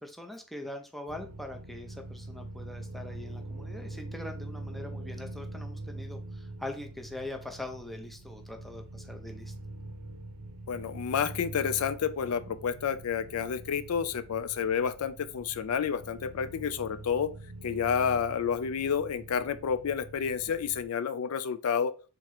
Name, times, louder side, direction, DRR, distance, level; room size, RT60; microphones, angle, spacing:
voice 1, 0.0-9.5, left 1 dB, ahead, 0.5 m, -42 dB
sound 1, 1.1-20.8, right 1 dB, 85° right, 0.6 m, -44 dB
voice 2, 10.7-17.3 17.6-21.9, left 7 dB, 80° left, 0.4 m, -30 dB
3.7 x 2.9 x 4.7 m
head